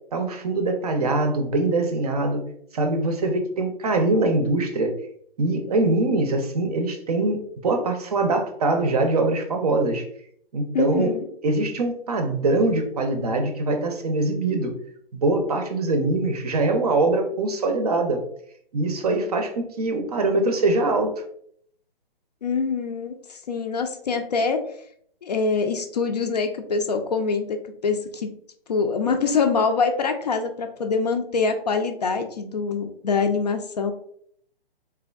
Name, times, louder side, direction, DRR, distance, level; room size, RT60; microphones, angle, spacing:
voice 1, 0.1-2.4 2.7-4.9 5.4-10.0 10.5-11.1 11.4-14.7 15.1-18.2 18.7-21.2, right 2 dB, 40° right, 5 dB, 0.6 m, -23 dB
voice 2, 10.7-11.3 22.4-24.6 25.2-27.6 27.8-28.3 28.7-33.9, left 4 dB, 45° left, 6 dB, 0.4 m, -24 dB
3.5 x 3.3 x 2.2 m, 0.65 s
figure-of-eight pair, 140°, 30 cm